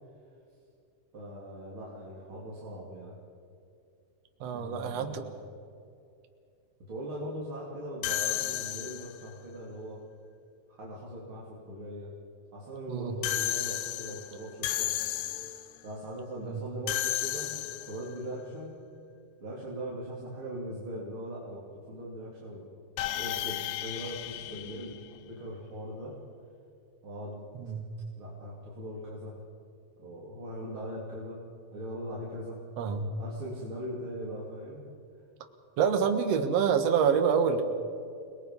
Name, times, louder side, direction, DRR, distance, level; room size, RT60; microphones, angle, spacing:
voice 1, 1.1-3.2 4.5-5.6 6.9-10.0 10.7-12.1 12.5-15.0 15.8-17.5 17.9-18.8 19.4-22.7 23.2-25.0 25.3-26.1 27.0-27.5 28.2-29.4 30.0-31.4 31.7-32.6 33.2-34.8, equal, 30° right, -6 dB, 3.6 m, -40 dB
voice 2, 4.4-5.2 12.9-13.2 16.4-16.6 27.6-27.9 32.8-33.1 35.8-37.6, right 7 dB, 55° right, 6 dB, 1.9 m, -27 dB
sound 1, 8.0-9.3 13.2-15.8 16.9-18.1 23.0-25.5, left 14 dB, 75° left, 2.8 m, -33 dB
30.0 x 20.5 x 5.5 m, 2.5 s
omnidirectional pair, 4.9 m